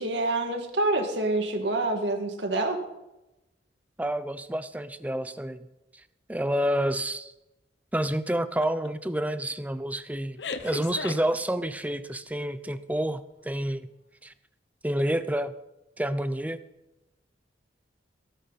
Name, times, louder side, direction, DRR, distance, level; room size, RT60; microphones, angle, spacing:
voice 1, 0.0-2.8, right 2 dB, 80° right, 4 dB, 2.1 m, -27 dB
voice 2, 4.0-5.6 6.3-7.3 7.9-13.9 14.2-14.3 14.8-15.5 16.0-16.6, right 1 dB, 10° right, 12 dB, 0.6 m, -29 dB
sound 1, 8.6-8.9 9.3-9.5 10.4-11.9, left 4 dB, 75° left, 1.0 m, -36 dB
17.0 x 13.5 x 4.1 m, 0.96 s
head